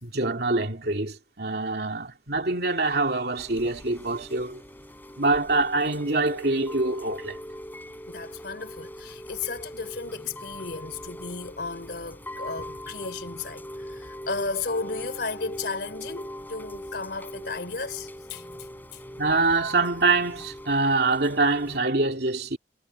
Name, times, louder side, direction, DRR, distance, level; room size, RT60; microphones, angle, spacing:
voice 1, 0.0-4.6 5.2-7.4 19.2-22.6, right 3 dB, 65° right, 2.8 m, -25 dB
Chime / Rain, 3.4-21.8, equal, 10° left, 4.6 m, -41 dB
voice 2, 8.1-18.5 18.9-19.0, left 4 dB, 65° left, 3.7 m, -34 dB
head